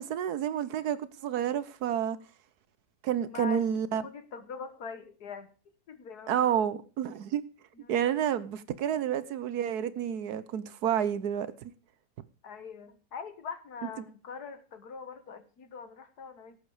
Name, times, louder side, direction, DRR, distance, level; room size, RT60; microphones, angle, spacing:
voice 1, 0.0-2.2 3.0-4.0 6.3-7.4 7.9-11.7, right 9 dB, 75° right, 1.3 m, -30 dB
voice 2, 3.3-3.7 3.9-5.5 5.9-6.7 7.7-8.1 12.4-16.6, left 6 dB, 70° left, 1.9 m, -43 dB
17.5 x 8.4 x 4.9 m
omnidirectional pair, 1.7 m